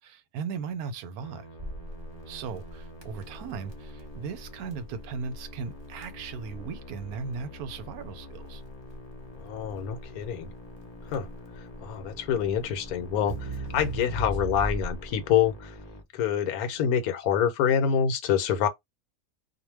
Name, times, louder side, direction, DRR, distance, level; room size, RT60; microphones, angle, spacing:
voice 1, 0.0-1.5 2.3-8.6, right 5 dB, 85° right, 1.1 m, -37 dB
Musical instrument, 1.2-16.0, left 2 dB, 35° left, 0.6 m, -47 dB
Crackle, 1.6-15.2, right 1 dB, 30° right, 0.5 m, -38 dB
voice 2, 9.4-10.5 11.1-11.3 11.6-15.7 16.1-18.7, left 8 dB, 80° left, 1.1 m, -26 dB
2.4 x 2.2 x 3.1 m
omnidirectional pair, 1.6 m